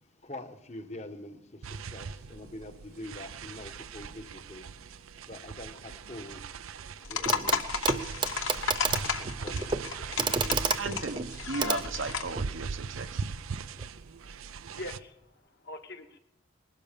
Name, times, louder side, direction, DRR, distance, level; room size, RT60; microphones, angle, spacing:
voice 1, 0.0-8.6 9.0-10.6, left 1 dB, 35° left, 8 dB, 1.1 m, -46 dB
sound 1, 1.6-15.0, right 5 dB, 90° right, 0.6 m, -40 dB
sound 2, 7.0-12.4, left 5 dB, 70° left, 1.1 m, -33 dB
Clock, 7.3-7.6 7.8-12.5 13.8-13.9, right 5 dB, 20° right, 0.5 m, -31 dB
voice 2, 10.8-13.2, right 3 dB, 70° right, 9 dB, 1.0 m, -36 dB
voice 3, 13.6-14.1 14.5-16.2, left 1 dB, 50° left, 6 dB, 1.3 m, -45 dB
20.5 x 12.0 x 5.2 m, 0.82 s
head